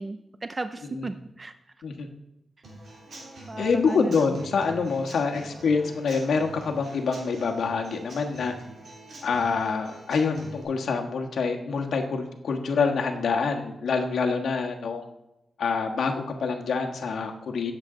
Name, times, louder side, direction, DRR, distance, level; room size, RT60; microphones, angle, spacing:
voice 1, 0.0-1.5 3.5-4.4, right 2 dB, 25° right, 10 dB, 0.4 m, -35 dB
Human voice / Acoustic guitar / Drum, 2.6-10.6, right 1 dB, 55° right, 3.5 m, -45 dB
voice 2, 3.6-8.5 9.2-15.1 15.6-17.7, left 5 dB, 80° left, 3 dB, 1.4 m, -26 dB
17.5 x 7.5 x 3.8 m, 0.90 s
wide cardioid pair, 150°, 0 cm